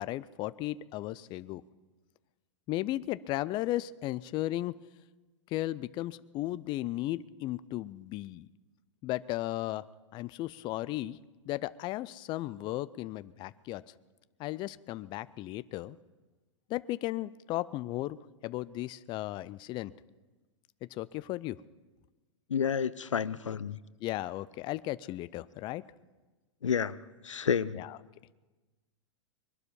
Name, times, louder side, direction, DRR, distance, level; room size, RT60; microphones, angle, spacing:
voice 1, 0.0-1.6 2.7-4.8 5.5-8.5 9.0-9.9 10.1-11.2 11.5-13.9 14.4-16.0 16.7-18.2 18.4-19.9 20.9-21.6 24.0-25.8 27.7-28.0, left 16 dB, 30° left, 16 dB, 0.4 m, -35 dB
voice 2, 22.5-23.8 26.6-27.0 27.2-27.8, left 7 dB, 85° left, 18 dB, 0.5 m, -30 dB
22.0 x 12.0 x 5.3 m, 1.2 s
hypercardioid pair, 110°, 16 cm